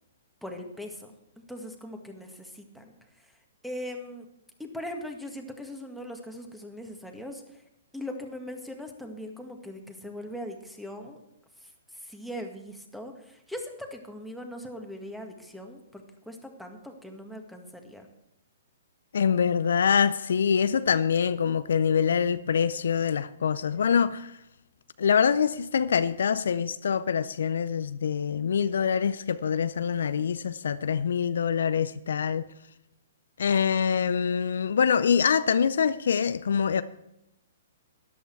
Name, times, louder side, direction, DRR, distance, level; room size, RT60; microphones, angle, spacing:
voice 1, 0.4-4.3 4.6-7.6 7.9-11.2 11.6-18.1, left 1 dB, ahead, 1.8 m, -40 dB
voice 2, 19.1-24.3 25.0-32.5 33.4-36.8, left 7 dB, 70° left, 0.5 m, -25 dB
13.0 x 11.0 x 4.6 m
figure-of-eight pair, 120°, 0 cm